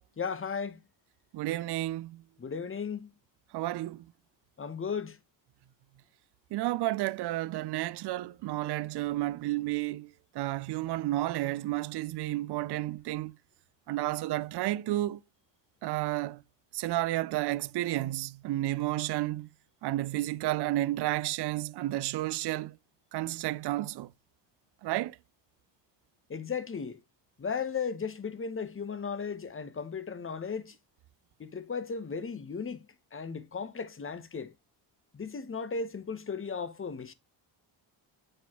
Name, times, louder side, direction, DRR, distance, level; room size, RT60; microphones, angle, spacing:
voice 1, 0.2-0.8 2.4-3.1 4.6-5.2 26.3-27.0 27.4-30.8 31.4-32.8 33.1-34.5 35.1-37.1, left 5 dB, 25° left, 1.0 m, -35 dB
voice 2, 1.3-2.2 3.5-4.0 6.5-10.1 10.3-13.3 13.9-15.2 15.8-16.4 16.7-19.5 19.8-22.8 23.1-24.1 24.8-25.2, right 16 dB, 55° right, 0.5 m, -31 dB
8.9 x 4.1 x 3.0 m
supercardioid pair, 70°, 49 cm